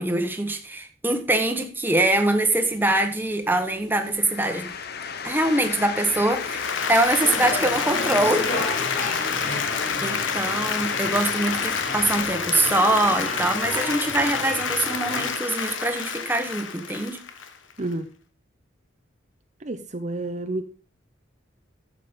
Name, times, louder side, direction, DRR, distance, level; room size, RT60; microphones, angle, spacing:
voice 1, 0.0-4.7 5.2-8.5 10.0-17.2, right 2 dB, 10° right, 1.2 m, -23 dB
sound 1, 2.1-12.2, left 6 dB, 55° left, 0.9 m, -33 dB
Applause, 6.2-17.9, left 6 dB, 85° left, 1.3 m, -29 dB
sound 2, 7.2-15.3, left 1 dB, 40° left, 4.0 m, -33 dB
voice 2, 17.8-18.1 19.6-20.6, right 2 dB, 40° right, 0.8 m, -30 dB
11.5 x 7.6 x 5.2 m
head